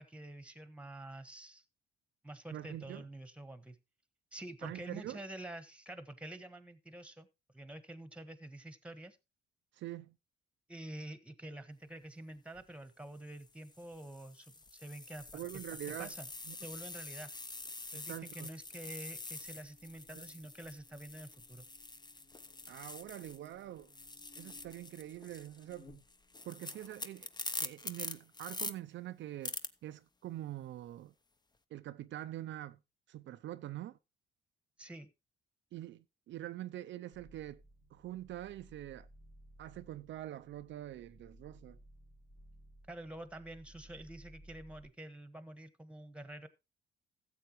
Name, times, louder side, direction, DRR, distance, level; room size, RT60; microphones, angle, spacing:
voice 1, 0.0-1.6 2.2-3.8 4.3-7.3 7.5-9.2 10.7-15.4 16.0-16.3 16.6-17.3 17.9-21.6 34.8-35.1 42.9-46.5, right 1 dB, 5° right, 1.4 m, -48 dB
voice 2, 2.5-3.1 4.6-5.2 9.7-10.2 15.3-16.1 16.5-16.6 17.9-18.5 20.1-20.2 22.7-23.9 24.4-25.9 26.4-27.3 27.6-31.1 31.7-32.8 33.1-34.0 35.7-37.6 37.9-39.1 39.6-41.8, right 13 dB, 70° right, 0.5 m, -45 dB
sound 1, 12.4-12.6 13.4-23.5 23.8-28.7 29.4-29.7, left 3 dB, 20° left, 0.8 m, -45 dB
Buzz, 15.2-26.6, left 2 dB, 50° left, 3.6 m, -65 dB
sound 2, 37.1-44.8, right 1 dB, 85° left, 5.3 m, -59 dB
14.0 x 7.9 x 3.0 m
cardioid pair, 90°, 20 cm